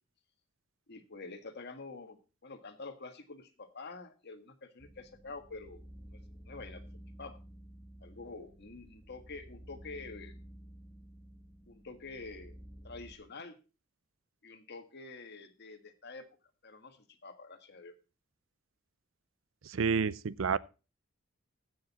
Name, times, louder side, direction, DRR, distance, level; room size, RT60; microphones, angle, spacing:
voice 1, 0.9-5.8 6.1-6.2 6.4-6.8 7.2-7.4 8.0-10.3 11.7-12.6 12.8-13.6 14.4-16.3 16.6-18.0, left 3 dB, 55° left, 1.6 m, -47 dB
sound 1, 4.8-13.1, equal, 20° left, 1.5 m, -52 dB
voice 2, 19.6-20.6, right 5 dB, 70° right, 0.5 m, -29 dB
15.5 x 6.6 x 4.2 m
head